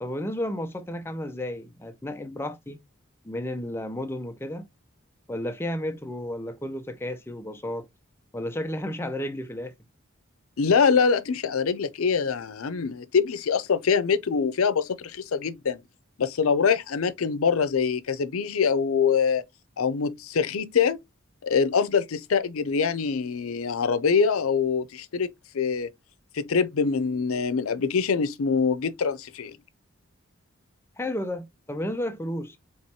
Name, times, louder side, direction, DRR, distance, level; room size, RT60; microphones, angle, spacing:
voice 1, 0.0-2.8 3.2-4.7 5.3-7.9 8.3-9.7 31.0-32.6, left 1 dB, 10° left, 0.5 m, -32 dB
voice 2, 10.6-15.8 16.2-19.4 19.8-21.0 21.4-25.9 26.3-29.6, left 6 dB, 90° left, 0.5 m, -24 dB
4.6 x 3.0 x 2.8 m
head